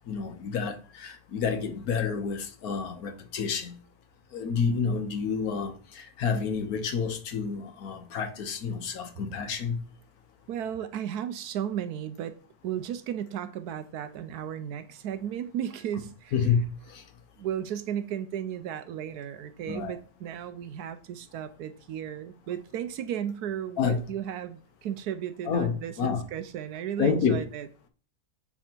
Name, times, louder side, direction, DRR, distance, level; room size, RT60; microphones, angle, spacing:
voice 1, 0.1-3.8 4.3-9.8 16.3-17.0 19.7-19.9 23.8-24.1 25.5-26.3 27.0-27.4, left 6 dB, 65° left, 1.3 m, -29 dB
voice 2, 10.5-12.4 12.6-16.3 17.4-27.7, right 10 dB, 75° right, 1.1 m, -34 dB
9.7 x 3.5 x 4.4 m
omnidirectional pair, 1.8 m